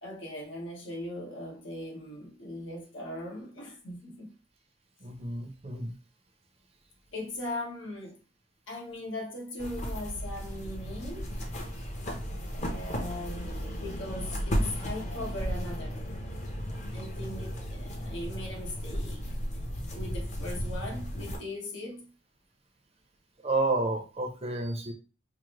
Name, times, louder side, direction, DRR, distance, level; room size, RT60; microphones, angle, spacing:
voice 1, 0.0-4.3 7.1-8.2 8.7-11.4 12.5-16.0 16.9-19.2 19.9-22.1, left 1 dB, 80° left, 1.3 m, -39 dB
voice 2, 5.0-5.9 23.4-24.9, right 2 dB, 30° right, 0.6 m, -30 dB
sound 1, 9.6-21.4, equal, 35° left, 0.8 m, -34 dB
4.9 x 2.1 x 3.0 m
head